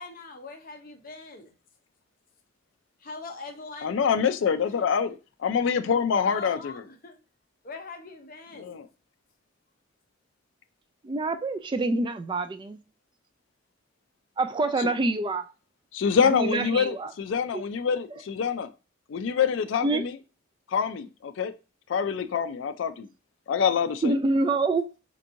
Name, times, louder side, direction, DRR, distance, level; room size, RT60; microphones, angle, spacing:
voice 1, 0.0-1.5 3.0-4.0 4.6-4.8 6.2-7.2 7.6-8.8 16.0-16.1, left 3 dB, 45° left, 0.7 m, -42 dB
voice 2, 3.8-6.7 8.6-8.8 14.8-14.9 15.9-18.7 19.1-20.2 20.7-21.5 21.9-23.1 23.5-24.2, left 6 dB, 65° left, 0.4 m, -26 dB
voice 3, 11.0-12.8 14.4-15.5 16.3-17.1 17.5-17.6 19.8-20.0 24.0-24.9, right 2 dB, 25° right, 0.3 m, -26 dB
4.4 x 2.9 x 2.5 m
head